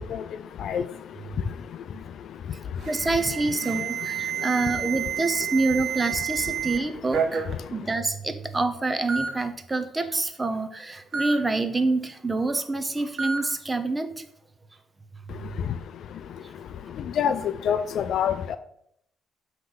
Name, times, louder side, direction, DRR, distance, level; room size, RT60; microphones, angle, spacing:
Alarm, 2.8-6.8 7.1-7.5 8.4-8.5 9.1-9.3 11.1-11.3 13.2-13.4, right 8 dB, 55° right, 1.2 m, -29 dB
voice 1, 2.9-7.4 7.7-14.2 15.4-15.5 16.4-16.5, right 3 dB, 20° right, 9 dB, 0.8 m, -27 dB
voice 2, 17.7-18.6, left 8 dB, 70° left, 12 dB, 0.3 m, -24 dB
7.8 x 3.2 x 5.6 m, 0.74 s
cardioid pair, 90°, 0 cm